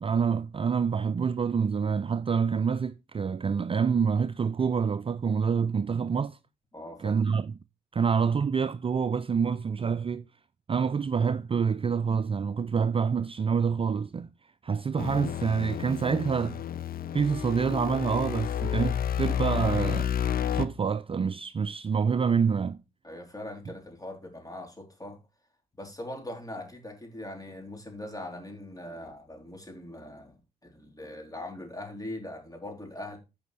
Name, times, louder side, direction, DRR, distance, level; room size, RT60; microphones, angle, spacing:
voice 1, 0.0-6.4 7.0-7.5 7.9-10.2 10.7-14.3 14.6-16.6 17.1-20.1 20.5-22.8, right 6 dB, 30° right, 0.4 m, -27 dB
voice 2, 6.7-7.1 23.0-25.2 25.8-30.4 30.6-33.2, left 1 dB, 20° left, 3.9 m, -41 dB
sound 1, 15.0-20.7, left 9 dB, 50° left, 0.8 m, -30 dB
14.0 x 5.2 x 3.4 m
hypercardioid pair, 45°, 19 cm